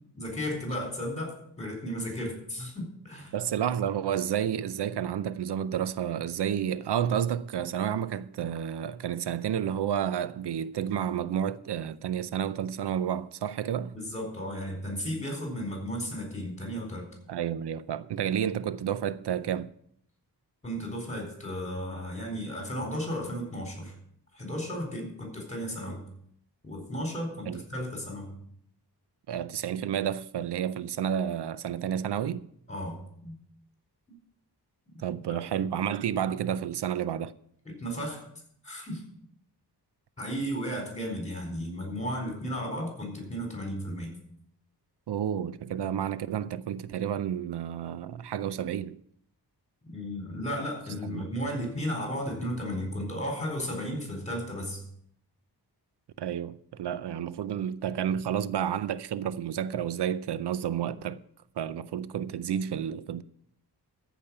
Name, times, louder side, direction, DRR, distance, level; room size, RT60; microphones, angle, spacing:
voice 1, 0.2-3.4 13.9-17.0 20.6-23.9 24.3-26.0 26.6-28.4 32.7-33.3 35.3-35.4 37.8-38.2 38.6-39.0 40.2-44.1 49.9-54.8, equal, 15° left, 4.3 m, -34 dB
voice 2, 3.3-14.0 17.3-19.7 27.5-27.6 29.3-32.4 35.0-37.3 45.1-49.0 51.0-51.3 56.2-61.2 61.6-63.2, right 9 dB, 85° right, 0.6 m, -30 dB
14.0 x 5.2 x 8.6 m
wide cardioid pair, 135°, 40 cm